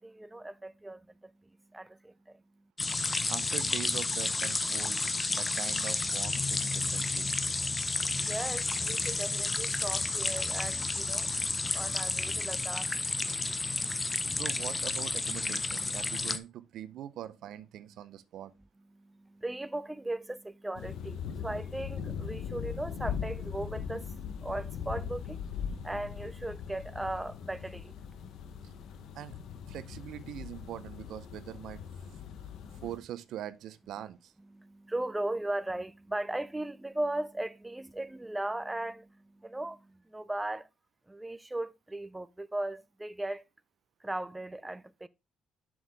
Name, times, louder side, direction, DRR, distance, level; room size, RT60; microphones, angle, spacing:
voice 1, 0.0-1.3 1.7-2.4 8.2-11.3 11.7-12.8 18.9-29.2 32.2-32.8 34.5-40.7 41.1-43.4 44.0-45.1, right 1 dB, 10° right, 0.4 m, -38 dB
sound 1, 2.8-16.4, left 3 dB, 25° left, 0.7 m, -31 dB
voice 2, 3.3-5.0 5.3-7.3 14.3-18.5 29.1-29.4 29.7-31.8 32.8-34.3, right 11 dB, 80° right, 0.6 m, -42 dB
sound 2, 20.8-33.0, left 7 dB, 80° left, 0.9 m, -40 dB
7.3 x 6.3 x 3.4 m
cardioid pair, 90°, 0 cm